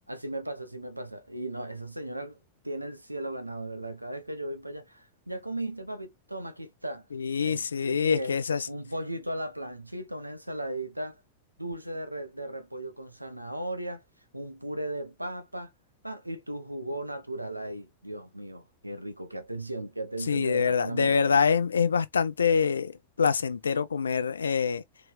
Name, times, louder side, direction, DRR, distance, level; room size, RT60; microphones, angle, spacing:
voice 1, 0.1-2.4 2.6-7.1 7.4-8.3 8.7-11.2 11.6-14.0 14.3-15.7 16.0-21.4, right 1 dB, 85° right, 0.9 m, -36 dB
voice 2, 7.1-8.7 20.3-24.8, left 6 dB, 70° left, 0.6 m, -25 dB
4.4 x 3.1 x 3.4 m
figure-of-eight pair, 90°, 0 cm